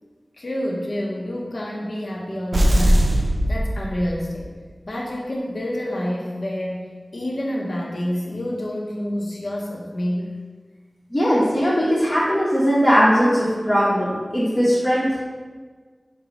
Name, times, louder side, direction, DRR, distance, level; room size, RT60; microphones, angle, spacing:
voice 1, 0.4-3.1 3.5-4.5 4.8-10.3, equal, 75° left, -2 dB, 0.5 m, -28 dB
sound 1, 2.5-4.4, equal, 80° right, 0.4 m, -19 dB
voice 2, 11.1-15.2, equal, 30° left, -9 dB, 0.9 m, -19 dB
5.8 x 2.0 x 3.9 m, 1.5 s
wide cardioid pair, 55°, 0 cm